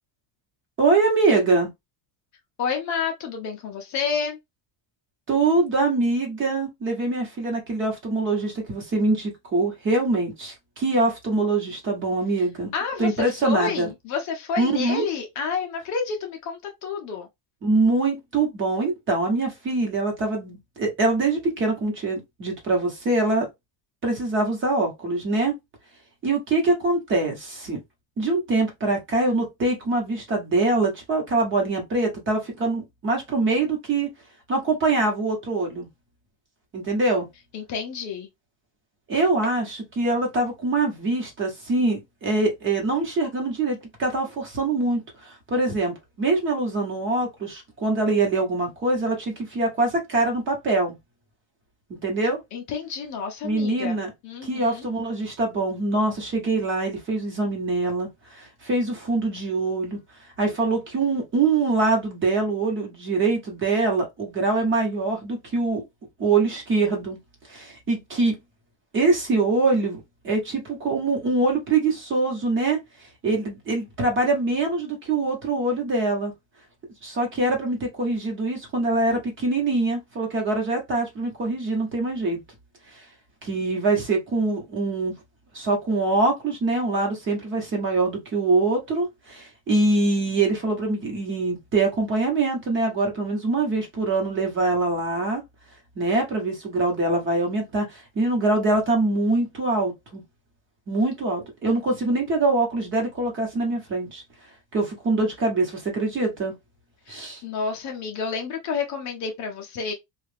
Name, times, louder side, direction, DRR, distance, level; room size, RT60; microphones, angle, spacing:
voice 1, 0.8-1.7 5.3-12.7 13.0-13.9 14.6-15.1 17.6-23.5 24.0-25.5 26.2-27.8 28.2-34.1 34.5-35.9 36.7-37.3 39.1-51.0 51.9-52.4 53.4-54.1 54.4-60.0 60.4-65.8 66.2-67.2 67.5-68.3 68.9-72.8 73.2-76.3 77.0-82.4 82.9-83.0 83.4-85.1 85.5-95.4 96.0-100.2 100.9-104.2 104.7-106.5 107.1-107.4, right 3 dB, 25° right, 1.1 m, -24 dB
voice 2, 2.6-4.4 12.7-17.3 37.5-38.3 52.5-54.9 107.1-109.9, left 5 dB, 40° left, 0.6 m, -30 dB
3.2 x 2.4 x 3.3 m
cardioid pair, 175°, 46 cm